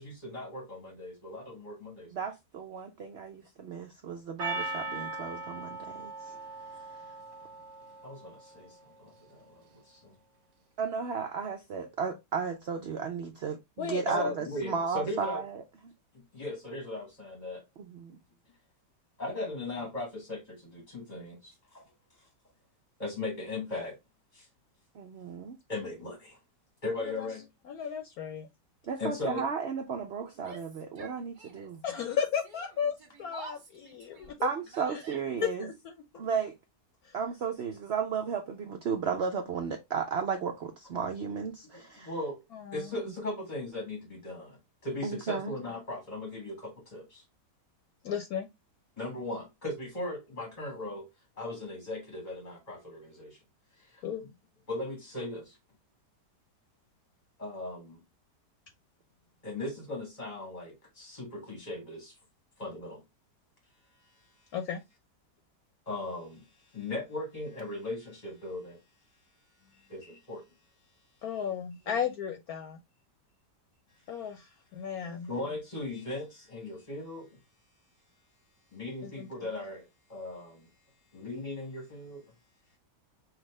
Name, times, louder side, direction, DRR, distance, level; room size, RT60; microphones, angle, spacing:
voice 1, 0.0-2.3 8.0-10.1 14.1-15.4 16.3-17.6 19.2-21.8 23.0-24.0 24.3-24.5 25.7-26.4 26.8-27.4 29.0-29.5 36.1-36.3 42.0-42.4 42.7-44.6 44.8-47.2 49.0-51.1 51.4-53.4 53.8-54.0 54.7-55.6 57.4-58.0 59.4-62.1 62.6-63.0 65.9-66.4 66.7-68.8 69.9-70.4 75.0-77.3 78.7-80.7 81.1-82.2, left 2 dB, 30° left, 1.0 m, -38 dB
voice 2, 2.1-6.1 10.8-15.6 17.8-18.2 24.9-25.6 28.9-31.8 34.4-35.7 36.2-36.5 37.1-42.1 45.0-45.5, right 6 dB, 90° right, 0.5 m, -34 dB
Percussion, 4.4-8.7, right 2 dB, 75° right, 1.7 m, -39 dB
voice 3, 13.8-14.3 27.0-27.3 27.6-28.5 31.8-32.9 33.2-34.5 34.9-35.0 35.4-36.2 37.0-37.1 42.5-43.0 48.0-48.5 54.0-54.2 64.5-64.8 71.2-72.8 74.1-75.3 79.0-79.3, left 8 dB, 70° left, 1.0 m, -34 dB
Yell, 30.3-31.8 32.1-35.5, right 3 dB, 35° right, 0.9 m, -49 dB
5.8 x 2.4 x 3.1 m
omnidirectional pair, 1.8 m